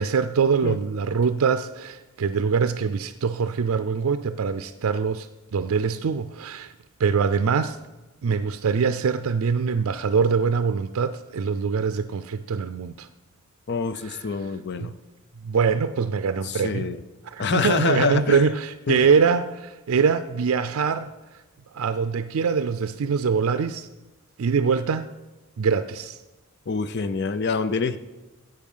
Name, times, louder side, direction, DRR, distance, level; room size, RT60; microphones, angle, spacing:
voice 1, 0.0-6.7 7.0-7.8 8.2-13.1 14.0-14.2 14.8-14.9 15.4-16.9 17.2-21.1 21.7-23.9 24.4-25.1 25.6-26.2, right 5 dB, 75° right, 11 dB, 0.4 m, -23 dB
voice 2, 13.7-14.9 16.4-17.0 17.4-18.4 18.9-19.0 26.7-28.0, left 4 dB, 50° left, 13 dB, 0.6 m, -26 dB
13.5 x 7.8 x 5.5 m, 1.1 s
head